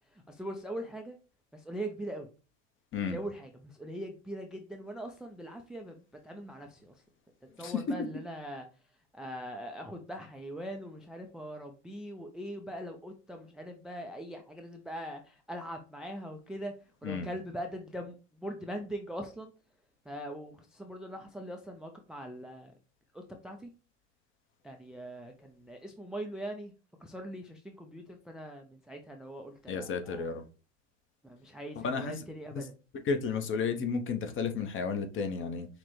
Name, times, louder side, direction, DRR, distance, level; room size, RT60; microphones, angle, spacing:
voice 1, 0.1-1.2 1.5-2.3 3.1-6.9 7.6-8.7 9.1-16.7 17.0-18.1 18.4-19.5 20.1-22.7 23.1-23.7 24.6-26.7 27.0-30.3 31.2-32.7, equal, ahead, 0.4 m, -41 dB
voice 2, 29.7-30.4 31.8-32.2 32.5-32.6 33.0-35.7, left 5 dB, 35° left, 0.8 m, -32 dB
6.0 x 2.1 x 3.1 m
hypercardioid pair, 90°, 37 cm